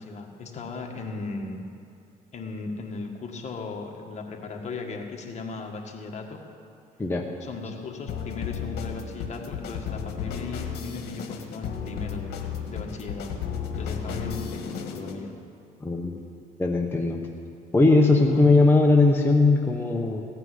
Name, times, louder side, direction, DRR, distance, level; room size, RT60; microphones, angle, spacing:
voice 1, 0.0-1.7 2.3-6.4 7.4-12.4 12.7-13.4 13.8-15.3 18.3-18.4, left 3 dB, 45° left, 2 dB, 1.7 m, -37 dB
sound 1, 8.1-15.2, left 7 dB, 70° left, 1.5 m, -34 dB
voice 2, 15.8-16.2 16.6-17.2 17.7-20.2, left 3 dB, 15° left, 0 dB, 0.9 m, -19 dB
16.5 x 5.9 x 9.5 m, 2.4 s
cardioid pair, 110°, 17 cm